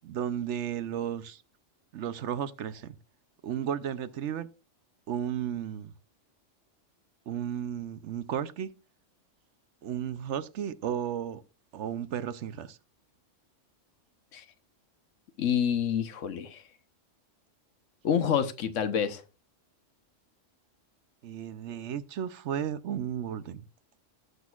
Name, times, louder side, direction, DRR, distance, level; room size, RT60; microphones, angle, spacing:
voice 1, 0.0-1.4 1.9-3.0 3.4-4.5 5.1-5.9 7.3-8.7 9.8-11.4 11.7-12.8 21.2-23.7, right 9 dB, 70° right, 0.9 m, -34 dB
voice 2, 15.4-16.6 18.0-19.2, left 8 dB, 80° left, 1.2 m, -27 dB
18.0 x 6.2 x 2.4 m
omnidirectional pair, 1.3 m